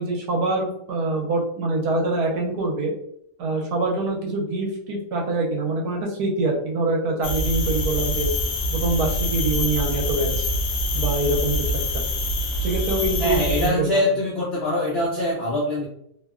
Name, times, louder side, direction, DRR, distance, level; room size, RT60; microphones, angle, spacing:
voice 1, 0.0-2.9 3.4-8.3 8.7-10.5 10.9-11.6 11.9-12.1 12.6-14.1, right 2 dB, 70° right, 0 dB, 1.0 m, -25 dB
sound 1, 7.2-13.7, left 1 dB, 70° left, 1.0 m, -25 dB
voice 2, 13.2-15.9, left 1 dB, 90° left, -5 dB, 0.5 m, -23 dB
2.8 x 2.1 x 2.3 m, 0.72 s
omnidirectional pair, 1.9 m